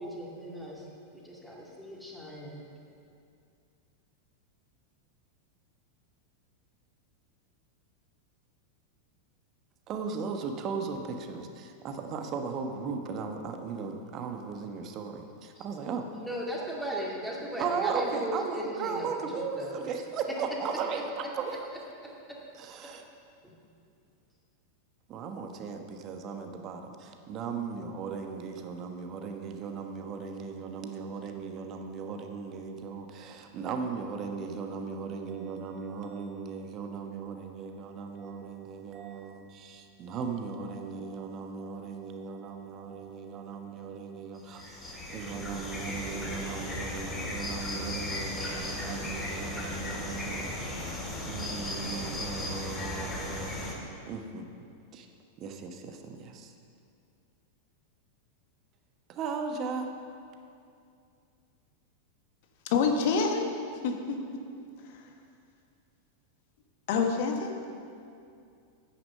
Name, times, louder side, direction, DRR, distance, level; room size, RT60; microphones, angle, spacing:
voice 1, 0.0-2.6 15.5-15.7 16.2-19.7 22.0-22.1 23.4-23.5, equal, ahead, -4 dB, 2.3 m, -37 dB
voice 2, 9.9-16.0 17.6-21.7 22.5-23.0 25.1-55.1 55.4-56.5 59.1-59.9, right 5 dB, 35° right, 4 dB, 1.1 m, -37 dB
sound 1, 44.4-53.7, left 1 dB, 15° left, 1.9 m, -36 dB
voice 3, 62.7-63.5 63.8-64.2 64.8-65.0 66.9-67.5, left 5 dB, 50° left, 4 dB, 1.3 m, -27 dB
9.9 x 9.3 x 5.5 m, 2.4 s
figure-of-eight pair, 90°, 0 cm